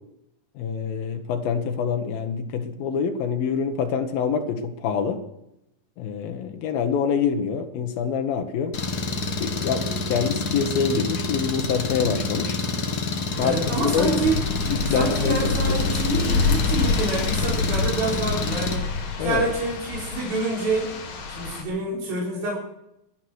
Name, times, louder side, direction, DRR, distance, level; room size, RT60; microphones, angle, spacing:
voice 1, 0.6-5.2 6.0-8.7 9.4-12.6 13.4-13.6 13.8-14.1 14.7-15.8 19.2-19.4, left 6 dB, 90° left, 5 dB, 3.1 m, -26 dB
Engine, 8.7-18.8, left 3 dB, 50° left, 1.2 m, -28 dB
sound 1, 13.3-21.6, left 4 dB, 70° left, 4.0 m, -27 dB
voice 2, 13.4-14.4 14.9-18.9 19.2-21.0 21.4-22.6, right 2 dB, 85° right, -4 dB, 6.0 m, -27 dB
23.5 x 9.2 x 6.3 m, 0.83 s
omnidirectional pair, 4.0 m